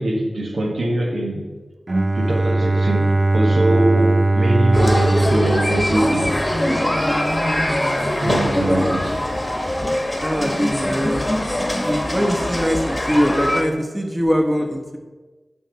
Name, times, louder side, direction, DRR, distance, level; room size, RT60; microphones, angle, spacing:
voice 1, 0.0-1.5 2.2-6.4 8.2-9.3, right 1 dB, 80° right, 0 dB, 1.2 m, -22 dB
Bowed string instrument, 1.9-6.8, right 2 dB, 45° right, 0.4 m, -19 dB
sound 1, 4.7-13.6, left 1 dB, 20° left, 1.3 m, -22 dB
voice 2, 10.2-11.2 11.8-15.0, equal, 15° right, 2 dB, 1.3 m, -22 dB
11.0 x 4.2 x 4.7 m, 1.3 s
cardioid pair, 45°, 0 cm